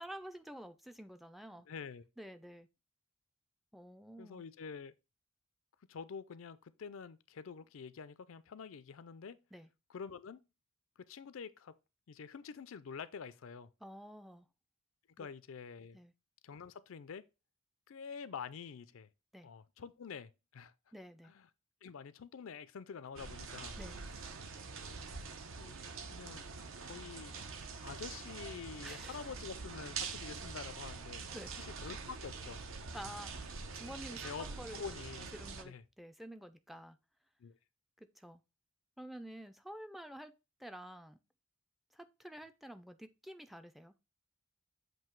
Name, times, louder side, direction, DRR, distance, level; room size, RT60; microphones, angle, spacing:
voice 1, 0.0-1.7 2.2-2.7 3.7-4.4 9.5-9.7 13.8-14.5 15.2-15.3 15.9-16.1 19.3-19.5 20.9-21.3 23.8-24.0 28.8-29.2 31.3-31.5 32.9-34.8 35.3-37.0 38.0-38.4 39.0-40.3 40.6-41.2 41.9-43.9, equal, ahead, 0.4 m, -49 dB
voice 2, 1.7-2.0 4.2-4.9 5.9-9.4 9.9-10.4 11.0-11.7 12.1-13.7 15.2-16.0 16.4-17.2 17.9-19.1 19.4-20.7 21.2-21.5 21.8-23.8 25.6-25.8 26.1-26.5 26.8-27.4 27.8-31.3 31.6-32.6 33.0-33.2 34.2-34.4 34.7-35.3 35.6-35.8 37.4-37.6, left 6 dB, 70° left, 0.4 m, -47 dB
sound 1, 23.2-35.6, right 4 dB, 75° right, 0.8 m, -45 dB
7.6 x 2.7 x 4.5 m
head